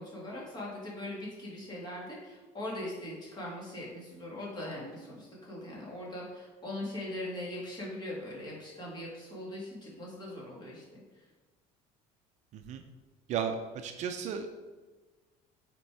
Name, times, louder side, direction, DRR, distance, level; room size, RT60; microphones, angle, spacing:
voice 1, 0.0-11.0, left 1 dB, 25° left, -4 dB, 2.3 m, -41 dB
voice 2, 13.3-14.5, right 7 dB, 45° right, 6 dB, 0.5 m, -34 dB
6.8 x 4.4 x 4.7 m, 1.3 s
cardioid pair, 155°, 16 cm